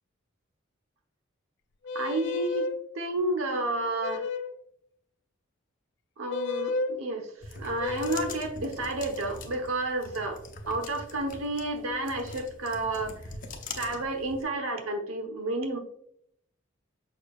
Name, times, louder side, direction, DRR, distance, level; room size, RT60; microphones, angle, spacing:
sound 1, 1.8-2.8 4.0-4.6 6.3-6.9 7.8-8.4, left 3 dB, 60° left, 0.4 m, -32 dB
voice 1, 1.9-4.3 6.2-10.4 10.7-13.1 13.7-15.8, right 2 dB, 85° right, 4 dB, 1.1 m, -31 dB
sound 2, 7.4-14.4, left 3 dB, 40° left, 0.8 m, -43 dB
6.8 x 6.1 x 2.4 m, 0.70 s
head